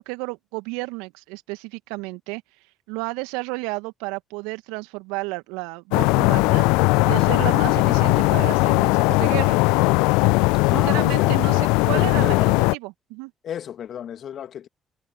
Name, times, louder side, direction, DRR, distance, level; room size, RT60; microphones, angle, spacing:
voice 1, 0.0-2.4 2.9-6.7 7.0-9.6 10.6-13.3, right 26 dB, 75° right, 2.2 m, -32 dB
sound 1, 5.9-12.7, left 27 dB, 75° left, 0.3 m, -19 dB
voice 2, 10.7-11.4 11.9-12.6 13.4-14.7, left 9 dB, 60° left, 2.5 m, -32 dB
figure-of-eight pair, 45°, 0 cm